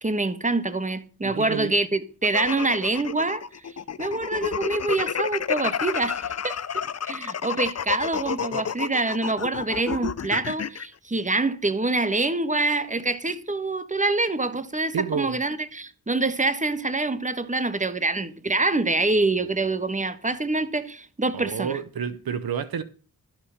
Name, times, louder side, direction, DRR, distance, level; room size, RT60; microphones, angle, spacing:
voice 1, 0.0-3.5 4.0-21.8, right 2 dB, 20° right, 1.3 m, -26 dB
voice 2, 1.2-1.7 14.9-15.3 21.3-22.8, right 7 dB, 85° right, 0.8 m, -29 dB
sound 1, 2.2-10.9, left 7 dB, 45° left, 0.6 m, -30 dB
12.5 x 5.9 x 6.4 m
cardioid pair, 50°, 35 cm